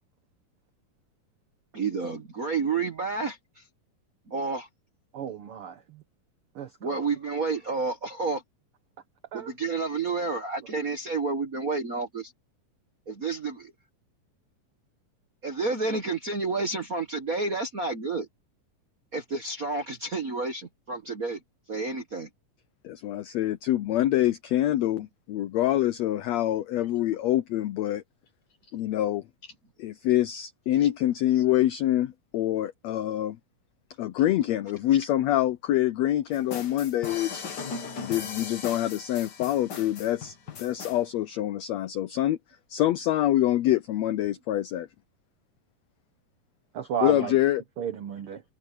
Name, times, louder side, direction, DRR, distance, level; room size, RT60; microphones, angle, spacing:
voice 1, 1.7-3.6 4.3-4.7 6.8-8.4 9.3-12.3 13.1-13.7 15.4-18.3 19.1-21.4 21.7-22.3, right 4 dB, 55° right, 0.9 m, -30 dB
voice 2, 5.1-5.8 6.6-7.0 9.3-9.5 46.7-47.3 47.8-48.4, right 8 dB, 90° right, 1.2 m, -33 dB
voice 3, 22.8-28.0 28.7-29.5 29.8-33.4 34.0-37.4 38.0-42.4 42.7-44.9 47.0-47.6, left 13 dB, 85° left, 1.5 m, -26 dB
sound 1, 36.3-41.0, left 5 dB, 50° left, 1.3 m, -38 dB
omnidirectional pair, 3.9 m